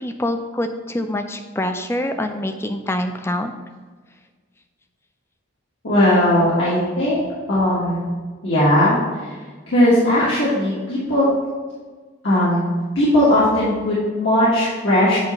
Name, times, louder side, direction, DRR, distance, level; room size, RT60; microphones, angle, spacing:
voice 1, 0.0-3.5, left 1 dB, 10° left, 6 dB, 0.4 m, -25 dB
voice 2, 5.8-8.1 8.4-9.3 9.7-11.3 12.2-12.7 12.9-15.2, left 1 dB, 70° left, -9 dB, 1.5 m, -18 dB
8.1 x 2.9 x 5.4 m, 1.5 s
head